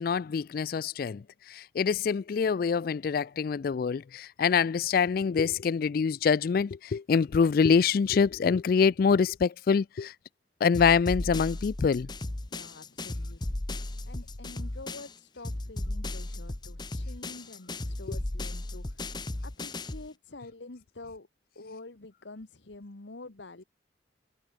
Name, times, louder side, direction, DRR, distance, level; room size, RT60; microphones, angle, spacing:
voice 1, 0.0-10.1 10.6-12.1, left 6 dB, 50° left, 0.3 m, -25 dB
sound 1, 10.7-15.2 15.4-20.1, left 2 dB, 25° left, 0.8 m, -35 dB
voice 2, 12.5-13.4 14.1-21.3 21.5-23.6, left 2 dB, 70° left, 1.3 m, -47 dB
head